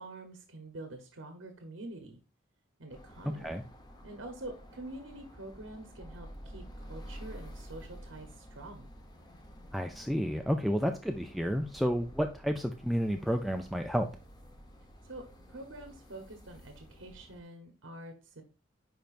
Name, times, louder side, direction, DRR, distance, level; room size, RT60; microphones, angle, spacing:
voice 1, 0.0-2.2 2.8-3.6 4.0-8.9 15.0-18.4, right 2 dB, 80° right, 5 dB, 1.0 m, -46 dB
sound 1, 2.9-17.4, equal, 20° left, 1.0 m, -50 dB
voice 2, 9.7-14.1, equal, ahead, 4 dB, 0.4 m, -31 dB
10.5 x 4.4 x 2.5 m, 0.33 s
head